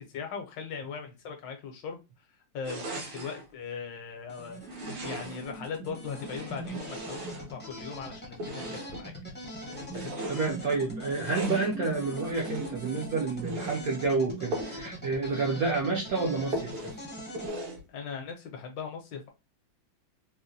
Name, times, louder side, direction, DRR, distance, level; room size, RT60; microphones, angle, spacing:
voice 1, 0.0-2.0 2.5-9.1 9.9-10.3 17.9-19.3, left 6 dB, 70° left, 1.3 m, -39 dB
sound 1, 2.6-3.5 4.6-5.5 6.1-7.8 8.3-9.1 9.6-10.5 11.1-11.8 12.3-12.9 13.3-13.8 14.5-14.9 15.2-15.3 15.7-15.8 16.5-17.0 17.3-17.8, right 1 dB, 85° right, 2.0 m, -38 dB
sound 2, 4.3-17.5, right 1 dB, 10° left, 0.5 m, -41 dB
voice 2, 10.3-17.0, right 3 dB, 65° right, 0.9 m, -29 dB
4.0 x 2.1 x 2.6 m
omnidirectional pair, 2.2 m